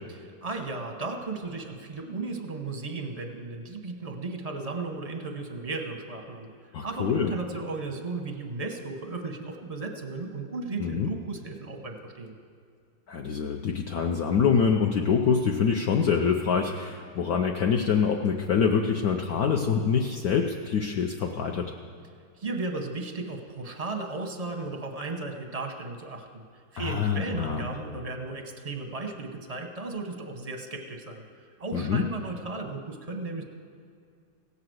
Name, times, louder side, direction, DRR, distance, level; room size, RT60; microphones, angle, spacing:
voice 1, 0.2-6.5 6.8-12.3 22.4-26.4 26.7-31.2 31.6-33.4, right 3 dB, 30° right, 3 dB, 0.7 m, -35 dB
voice 2, 6.7-7.3 10.8-11.1 13.1-21.7 26.8-27.6 31.7-32.0, left 6 dB, 65° left, 2 dB, 1.0 m, -25 dB
16.5 x 5.7 x 7.8 m, 2.3 s
omnidirectional pair, 2.1 m